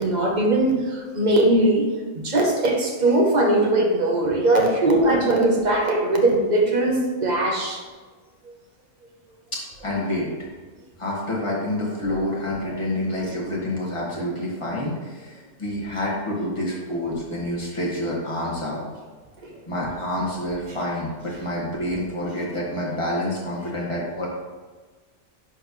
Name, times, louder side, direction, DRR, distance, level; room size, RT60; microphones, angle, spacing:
voice 1, 0.0-7.8 12.7-12.8 19.4-19.5, right 1 dB, 35° right, 1 dB, 1.1 m, -20 dB
voice 2, 9.5-10.3 11.0-18.9 19.7-24.3, left 1 dB, 25° left, -5 dB, 1.9 m, -28 dB
11.0 x 4.5 x 3.2 m, 1.4 s
omnidirectional pair, 1.3 m